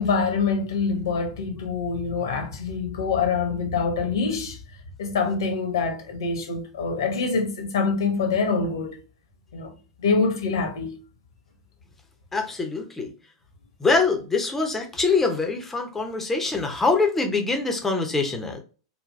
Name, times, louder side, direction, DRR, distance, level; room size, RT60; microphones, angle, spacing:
voice 1, 0.0-4.6 5.0-9.0 9.5-9.7 10.0-11.0, left 4 dB, 60° left, 1.0 m, -25 dB
voice 2, 12.3-13.1 13.8-18.6, left 4 dB, 10° left, 0.7 m, -24 dB
3.8 x 2.2 x 2.4 m
figure-of-eight pair, 95°, 3 cm